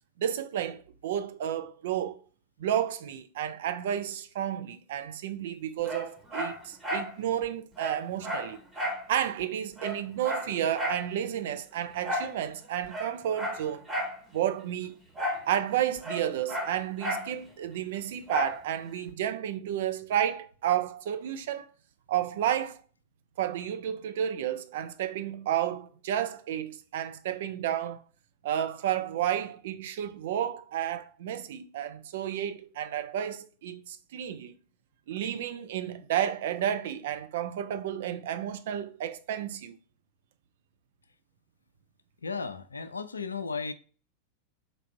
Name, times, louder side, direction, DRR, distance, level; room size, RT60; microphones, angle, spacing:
voice 1, 0.2-2.2 2.6-8.6 9.1-13.9 14.3-15.0 15.5-21.7 22.1-22.8 23.4-28.0 28.4-34.5 35.1-39.8, right 10 dB, 55° right, 0.4 m, -31 dB
Dog, 5.8-7.1 7.4-7.5 7.8-9.1 9.4-9.5 9.8-11.1 12.0-12.4 12.8-14.2 15.1-15.5 15.7-17.3 18.3-18.6 19.1-19.2, equal, 10° right, 1.0 m, -33 dB
voice 2, 42.2-43.7, left 5 dB, 75° left, 0.4 m, -35 dB
3.9 x 3.3 x 2.5 m
figure-of-eight pair, 90°, 0 cm